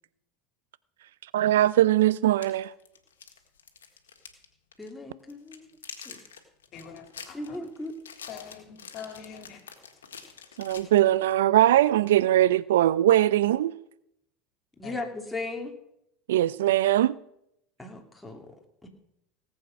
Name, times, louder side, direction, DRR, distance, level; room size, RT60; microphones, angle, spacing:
voice 1, 1.3-2.7 10.6-13.7 16.3-17.2, right 13 dB, 75° right, 0.4 m, -21 dB
sound 1, 1.4-1.5 2.2-4.5 4.7-4.9 5.3-11.4, left 7 dB, 85° left, 1.6 m, -46 dB
voice 2, 4.8-5.7 6.0-6.2 7.3-7.9 14.8-15.7 17.8-18.5, left 2 dB, 10° left, 2.8 m, -36 dB
voice 3, 6.7-7.6 8.3-9.6 14.8-15.0, left 7 dB, 50° left, 2.6 m, -44 dB
18.5 x 8.0 x 5.2 m
hypercardioid pair, 80°, 0 cm